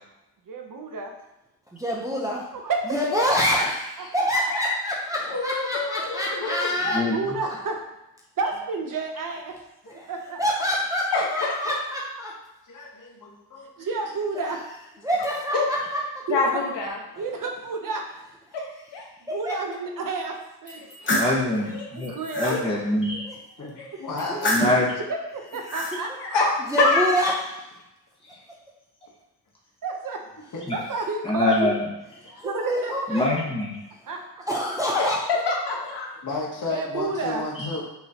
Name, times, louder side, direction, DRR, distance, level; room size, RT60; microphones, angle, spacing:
voice 1, 0.5-1.1 2.5-3.2 3.5-3.6 4.0-4.1 6.8-7.8 8.4-9.6 10.1-10.4 13.8-14.6 16.3-16.6 17.2-18.0 19.3-21.3 21.9-22.6 25.0-26.6 29.8-30.2 30.7-31.7 32.4-33.2 34.1-34.2 36.7-37.4, right 3 dB, 50° right, 3 dB, 0.7 m, -30 dB
voice 2, 1.7-2.5 2.9-3.8 4.1-7.0 9.9-10.1 10.4-12.3 15.0-16.2 19.3-19.5 23.2-23.4 24.3-24.5 26.7-27.6 32.2-33.2 34.5-35.5, equal, 10° right, -4 dB, 0.6 m, -26 dB
voice 3, 4.3-4.8 6.3-7.0 9.8-10.0 11.2-11.4 12.7-13.9 23.6-23.7 24.0-24.7 30.5-30.6 32.2-32.5 36.2-37.8, left 3 dB, 45° left, -3 dB, 1.2 m, -33 dB
voice 4, 5.3-6.7 11.1-11.8 15.5-15.7 16.3-17.0 18.5-19.0 21.1-21.2 21.7-21.9 22.4-22.6 23.1-23.2 23.8-23.9 26.2-26.5 26.8-27.0 34.9-35.1 35.5-36.1, left 4 dB, 75° left, -2 dB, 1.2 m, -26 dB
voice 5, 6.9-7.4 21.2-23.2 24.5-24.9 30.7-30.8 31.2-31.9 33.1-33.7 37.6-37.7, left 2 dB, 15° left, -5 dB, 1.3 m, -24 dB
sound 1, 20.7-21.4 21.9-22.6 24.2-24.9 25.5-26.0, left 1 dB, 30° left, 1.0 m, -27 dB
5.9 x 3.1 x 2.8 m, 0.94 s
wide cardioid pair, 125°, 42 cm